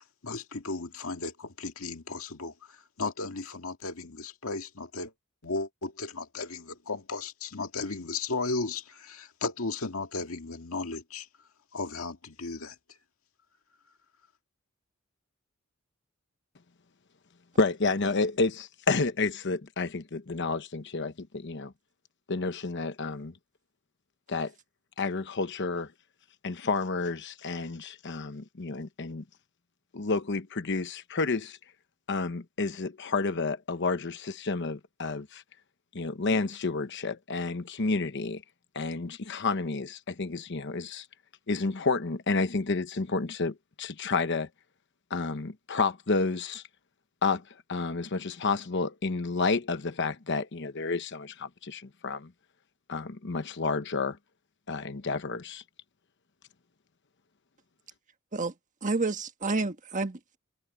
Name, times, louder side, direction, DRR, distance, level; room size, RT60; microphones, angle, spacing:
voice 1, 0.2-5.1 5.4-11.3 11.7-13.0, left 3 dB, 80° left, 2.0 m, -35 dB
voice 2, 17.6-21.7 22.3-23.3 24.3-24.5 25.0-25.9 26.4-29.2 29.9-31.6 32.1-35.4 35.9-38.4 38.7-41.1 41.5-44.5 45.1-46.6 47.2-47.4 47.7-52.3 52.9-54.2 54.7-55.6, left 3 dB, 60° left, 0.9 m, -30 dB
voice 3, 58.8-60.4, right 3 dB, 35° right, 1.5 m, -29 dB
head